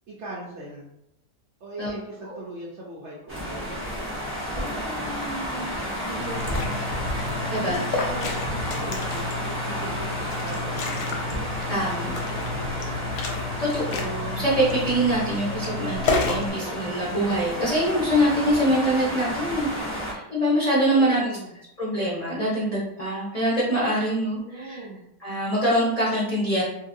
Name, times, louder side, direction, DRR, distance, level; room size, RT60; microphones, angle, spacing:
voice 1, 0.1-0.9 1.6-3.7 4.5-5.7 6.0-6.8 7.4-11.2 11.8-12.9 20.8-21.5 24.4-25.0, right 1 dB, 85° right, -4 dB, 0.6 m, -39 dB
sound 1, 3.3-20.1, equal, 15° right, 0.4 m, -31 dB
Liquid, 6.2-16.5, left 4 dB, 75° left, 1.0 m, -31 dB
voice 2, 7.5-8.1 11.7-12.1 13.6-21.3 21.8-24.8 25.2-26.6, equal, 40° left, -8 dB, 0.5 m, -24 dB
2.9 x 2.8 x 2.5 m, 0.82 s
omnidirectional pair, 1.9 m